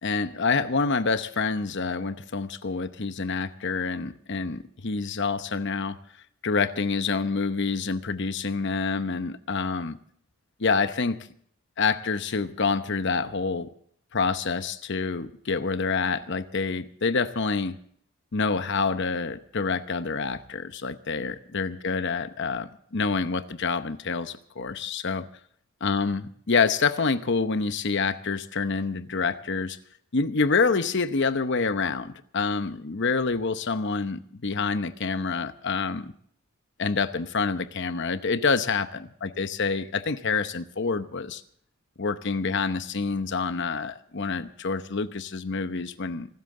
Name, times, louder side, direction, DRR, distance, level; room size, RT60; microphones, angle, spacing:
voice 1, 0.0-6.0 6.4-10.0 10.6-11.2 11.8-13.7 14.1-17.8 18.3-25.3 25.8-29.8 30.1-36.1 36.8-41.4 42.0-46.3, left 4 dB, 55° left, 0.9 m, -27 dB
26.0 x 13.0 x 3.8 m
head